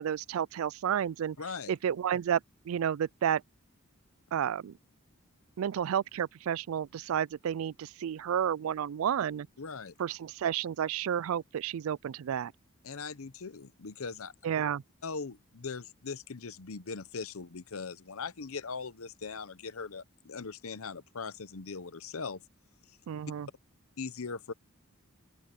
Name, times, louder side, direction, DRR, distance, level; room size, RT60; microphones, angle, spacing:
voice 1, 0.0-1.4 1.7-2.4 2.7-3.4 4.3-4.7 5.6-9.5 10.0-12.5 14.4-14.8 23.1-23.5, right 9 dB, 75° right, 0.3 m, -31 dB
voice 2, 1.4-1.7 9.6-9.9 12.8-14.3 15.0-22.4 24.0-24.5, left 4 dB, 80° left, 0.9 m, -40 dB
open air
head